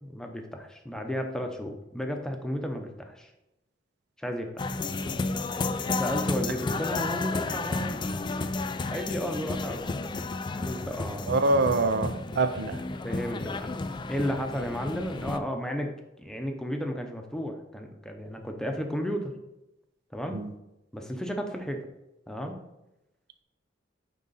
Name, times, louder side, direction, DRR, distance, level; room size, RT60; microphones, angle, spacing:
voice 1, 0.0-3.3 4.2-4.8 5.9-8.0 8.9-9.9 10.5-11.4 13.0-13.7 14.1-15.9 16.2-19.3 20.1-20.4 20.9-21.8 22.3-22.6, equal, 5° left, 3 dB, 0.7 m, -33 dB
sound 1, 4.6-15.4, left 3 dB, 25° left, 0.3 m, -32 dB
voice 2, 11.3-12.8 20.3-20.5, right 2 dB, 55° right, 10 dB, 0.4 m, -25 dB
9.2 x 3.8 x 4.1 m, 0.92 s
head